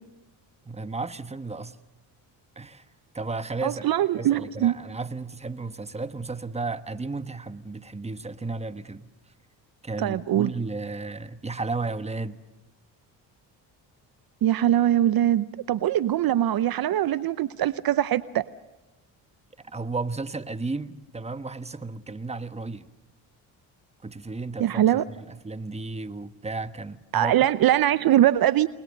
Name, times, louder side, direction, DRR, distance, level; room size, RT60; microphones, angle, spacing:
voice 1, 0.6-1.8 2.6-2.8 3.1-3.8 4.2-9.1 9.8-12.4 19.6-22.9 24.0-24.9 25.2-27.5, right 3 dB, 15° right, 11 dB, 1.3 m, -33 dB
voice 2, 3.6-4.8 10.0-10.5 14.4-18.4 24.6-25.0 27.1-28.7, right 12 dB, 55° right, 16 dB, 0.7 m, -22 dB
30.0 x 20.0 x 6.6 m, 1.1 s
supercardioid pair, 70°, 44 cm